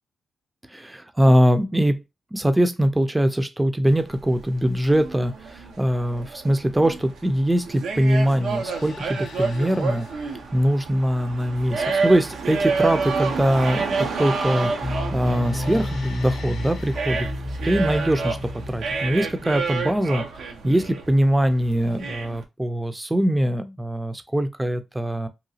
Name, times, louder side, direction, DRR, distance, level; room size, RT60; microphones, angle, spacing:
voice 1, 0.7-2.0 2.3-10.1 10.5-17.3 17.6-20.2 20.6-25.3, equal, 15° right, 0.4 m, -22 dB
sound 1, 3.9-22.4, right 4 dB, 85° right, 0.5 m, -29 dB
sound 2, 4.7-5.2 6.7-7.1 8.1-10.6 14.8-17.4 19.2-20.0, left 5 dB, 90° left, 0.5 m, -45 dB
sound 3, 14.8-19.9, left 1 dB, 35° left, 0.6 m, -31 dB
2.9 x 2.3 x 2.7 m
cardioid pair, 55°, 0 cm